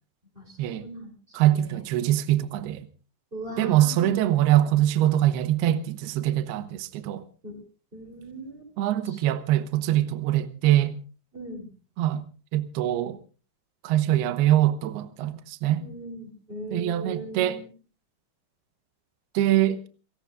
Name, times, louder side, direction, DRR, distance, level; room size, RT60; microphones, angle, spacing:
voice 1, 0.3-1.8 3.3-4.1 7.4-7.6 7.9-8.7 9.1-9.2 11.3-11.7 15.6-17.7, right 1 dB, 10° right, 3.4 m, -40 dB
voice 2, 1.3-2.9 3.6-7.2 8.8-11.0 12.0-12.2 12.5-13.2 13.8-15.8 16.7-17.6 19.3-19.8, right 13 dB, 75° right, 2.4 m, -23 dB
29.0 x 17.5 x 2.5 m
omnidirectional pair, 5.9 m